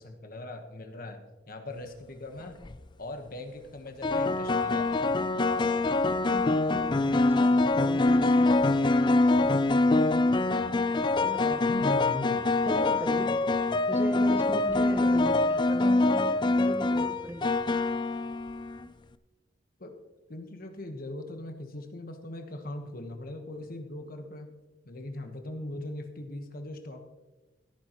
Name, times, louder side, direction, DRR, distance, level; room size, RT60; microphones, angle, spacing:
voice 1, 0.0-2.6 3.0-5.1 11.7-12.5 15.1-15.3 19.8-20.0 20.3-24.5 24.8-27.0, left 1 dB, 50° left, 5 dB, 1.3 m, -40 dB
sound 1, 2.4-2.8 4.0-18.9, left 2 dB, 25° left, 0.4 m, -25 dB
voice 2, 6.2-9.6 11.0-11.9 12.6-13.4 13.9-17.5, right 1 dB, 10° right, 7 dB, 0.7 m, -38 dB
16.5 x 9.8 x 3.1 m, 1.2 s
head